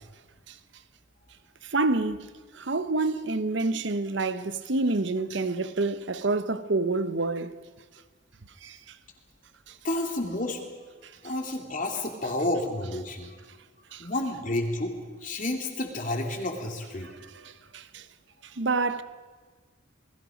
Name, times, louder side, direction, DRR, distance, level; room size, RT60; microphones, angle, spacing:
voice 1, 1.6-2.3 2.5-7.5 8.6-8.8 13.9-14.1 17.0-18.0 18.6-19.0, right 3 dB, 60° right, 0.9 m, -28 dB
voice 2, 9.8-10.6 11.2-13.3 14.0-14.9 15.2-17.1, left 1 dB, 40° left, 3.0 m, -30 dB
28.5 x 20.5 x 5.2 m
head